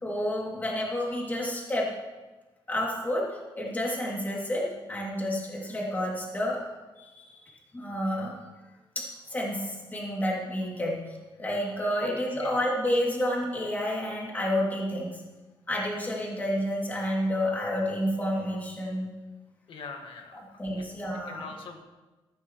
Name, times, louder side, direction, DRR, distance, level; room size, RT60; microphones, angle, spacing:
voice 1, 0.0-1.9 2.7-6.6 7.0-7.4 7.7-8.4 8.9-11.0 11.4-15.2 15.7-19.1 20.3-21.5, equal, 20° left, -3 dB, 2.6 m, -30 dB
voice 2, 19.7-20.8 21.3-21.8, left 5 dB, 70° left, 3 dB, 1.7 m, -43 dB
15.0 x 12.5 x 3.1 m, 1.2 s
wide cardioid pair, 150°, 9 cm